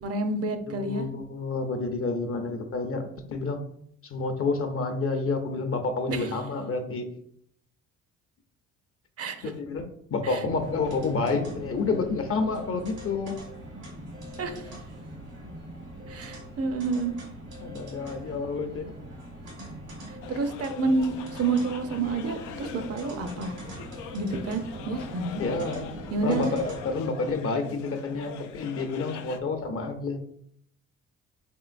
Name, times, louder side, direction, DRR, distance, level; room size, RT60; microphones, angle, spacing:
voice 1, 0.0-1.1 6.1-6.3 9.2-9.5 10.2-10.4 14.4-14.7 16.1-17.1 20.1-23.5 24.1-25.4 26.1-26.5, right 3 dB, 50° right, 7 dB, 0.6 m, -29 dB
voice 2, 0.6-3.0 3.3-3.6 4.0-7.0 9.4-13.4 17.6-18.9 25.3-30.2, left 3 dB, 50° left, 6 dB, 0.6 m, -29 dB
sound 1, 10.6-27.0, equal, 75° right, 1.4 m, -42 dB
sound 2, 20.2-29.4, left 8 dB, 85° left, 0.5 m, -43 dB
3.7 x 3.6 x 2.5 m, 0.66 s
cardioid pair, 90°, 30 cm